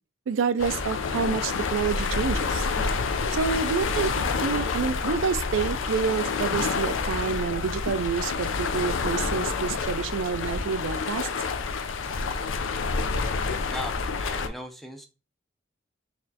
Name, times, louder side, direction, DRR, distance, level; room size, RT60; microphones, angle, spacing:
voice 1, 0.3-2.7 3.3-4.1 4.4-11.3, right 6 dB, 80° right, 0.4 m, -28 dB
sound 1, 0.6-14.5, left 4 dB, 80° left, 0.5 m, -28 dB
voice 2, 13.4-15.1, equal, ahead, 0.4 m, -39 dB
4.1 x 3.0 x 2.8 m
head